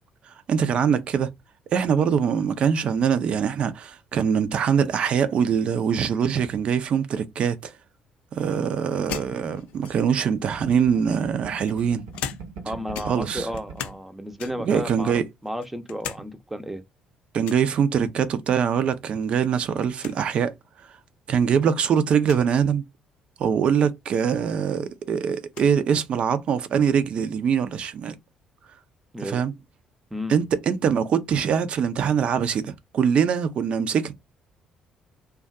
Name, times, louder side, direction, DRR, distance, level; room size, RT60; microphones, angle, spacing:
voice 1, 0.3-1.3 1.7-7.7 8.3-12.0 13.1-13.5 14.6-15.2 17.3-20.5 21.3-22.8 23.4-28.1 29.2-29.5 30.3-34.1, right 7 dB, 55° right, 0.5 m, -23 dB
sound 1, 9.1-10.3 11.1-12.7 12.9-14.1 14.4-14.8 15.3-16.2 16.6-16.7 17.4-17.7 19.1-19.5 19.7-19.8 20.0-20.2 21.0-21.1 22.2-22.5 24.1-24.2 24.6-25.7, left 9 dB, 70° left, 0.4 m, -38 dB
sound 2, 9.4-14.0 14.3-14.4 14.7-15.3, right 4 dB, 70° right, 0.9 m, -42 dB
voice 2, 12.6-16.8 29.1-29.4 30.1-30.4, equal, 10° right, 0.6 m, -33 dB
2.5 x 2.3 x 2.4 m
hypercardioid pair, 50°, 2 cm